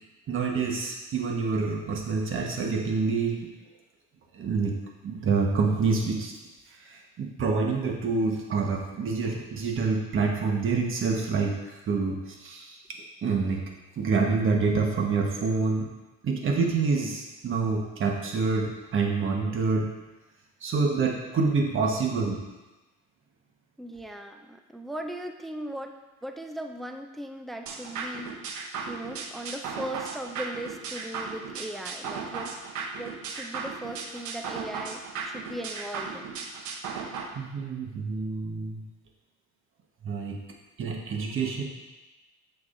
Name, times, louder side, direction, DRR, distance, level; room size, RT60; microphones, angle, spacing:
voice 1, 0.3-3.4 4.3-4.7 5.0-6.3 6.8-11.5 11.9-12.8 13.2-13.6 14.0-15.9 16.2-19.9 20.6-22.4 37.3-38.8 40.0-40.4 40.8-41.6, right 4 dB, 40° right, 1 dB, 1.3 m, -27 dB
voice 2, 23.8-25.9 26.2-28.4 28.9-32.6 33.0-36.4, right 1 dB, ahead, 5 dB, 0.3 m, -38 dB
sound 1, 27.7-37.3, right 5 dB, 70° right, 0.9 m, -36 dB
7.9 x 7.2 x 2.6 m, 1.1 s
cardioid pair, 125°, 31 cm